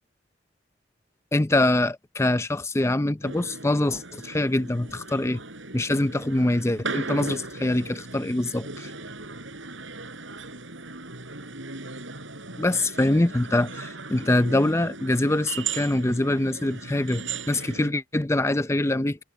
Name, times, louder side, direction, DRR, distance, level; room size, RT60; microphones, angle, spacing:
voice 1, 1.3-5.4 5.7-8.9 12.6-19.2, left 1 dB, 15° left, 0.6 m, -24 dB
sound 1, 3.2-17.9, right 4 dB, 75° right, 6.4 m, -37 dB
head